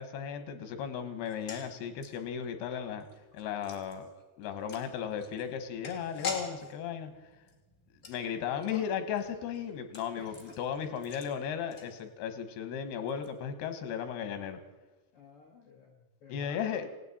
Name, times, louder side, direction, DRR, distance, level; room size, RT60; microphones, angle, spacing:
voice 1, 0.0-3.1 3.3-4.1 4.4-7.1 8.0-14.6 16.3-16.9, left 8 dB, 90° left, 9 dB, 3.3 m, -35 dB
sound 1, 1.2-12.4 12.7-12.8 13.1-13.3, left 5 dB, 30° left, 1.7 m, -46 dB
voice 2, 8.3-8.9 10.2-10.6 15.1-16.9, left 3 dB, 60° left, 0 dB, 1.5 m, -50 dB
19.0 x 17.0 x 4.3 m, 1.2 s
omnidirectional pair, 4.5 m